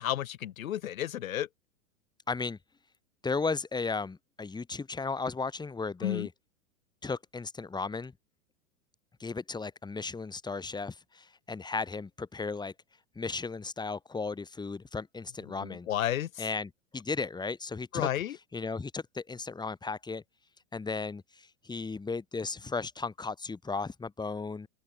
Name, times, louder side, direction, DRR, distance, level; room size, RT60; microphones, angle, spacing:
voice 1, 0.0-1.5 6.0-6.3 15.6-16.5 17.9-18.4, left 12 dB, 80° left, 1.8 m, -32 dB
voice 2, 2.3-2.6 3.2-6.3 7.0-8.1 9.2-12.7 13.2-15.9 16.4-18.1 18.5-20.2 20.7-24.7, left 4 dB, 10° left, 5.6 m, -35 dB
open air
hypercardioid pair, 130°, 40 cm